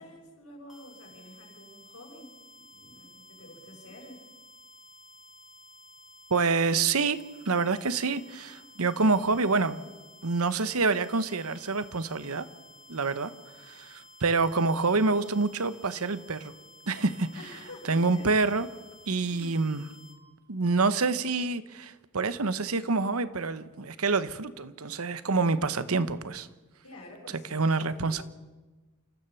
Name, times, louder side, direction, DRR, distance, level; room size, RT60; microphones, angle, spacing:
voice 1, 0.0-2.4 2.7-4.2 17.3-18.4 19.2-19.8 26.8-28.2, left 1 dB, 85° left, 6.1 m, -48 dB
sound 1, 0.7-20.2, left 2 dB, ahead, 2.7 m, -53 dB
voice 2, 6.3-9.8 10.2-12.5 12.9-13.3 13.7-16.5 16.9-17.3 17.9-18.7 19.1-19.9 20.5-26.5 27.5-28.2, right 4 dB, 75° right, 1.0 m, -27 dB
29.0 x 14.5 x 7.1 m
head